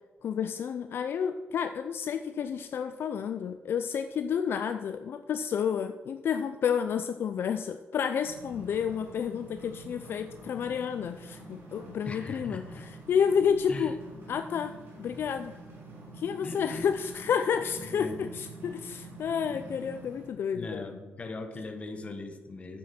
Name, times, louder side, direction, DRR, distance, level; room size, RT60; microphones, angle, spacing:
voice 1, 0.2-13.9 14.3-15.5 16.1-21.0, left 7 dB, 60° left, 8 dB, 0.4 m, -30 dB
sound 1, 8.2-20.3, right 1 dB, 65° right, 3.1 m, -46 dB
voice 2, 12.0-12.9 13.7-13.9 16.4-16.9 17.8-18.2 20.5-22.8, left 3 dB, 30° left, 6 dB, 1.2 m, -40 dB
10.0 x 8.5 x 4.3 m, 1.3 s
wide cardioid pair, 145°, 4 cm